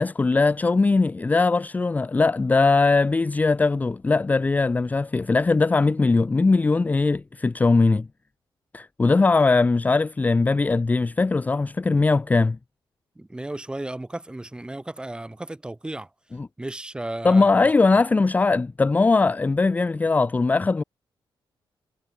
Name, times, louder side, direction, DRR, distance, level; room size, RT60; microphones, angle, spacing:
voice 1, 0.0-8.1 8.7-12.6 16.4-16.5 17.2-20.8, left 3 dB, 20° left, 0.5 m, -20 dB
voice 2, 13.2-16.1 16.6-17.7, right 1 dB, 10° right, 1.8 m, -34 dB
wide cardioid pair, 150°, 9 cm